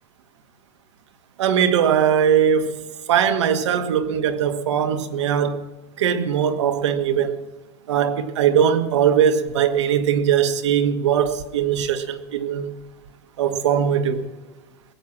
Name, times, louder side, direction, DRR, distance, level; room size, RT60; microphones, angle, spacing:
voice 1, 1.4-2.8 3.1-5.6 6.0-7.4 7.9-12.7 13.4-14.3, right 8 dB, 75° right, 1.4 m, -20 dB
20.5 x 8.7 x 6.0 m
supercardioid pair, 180°, 15 cm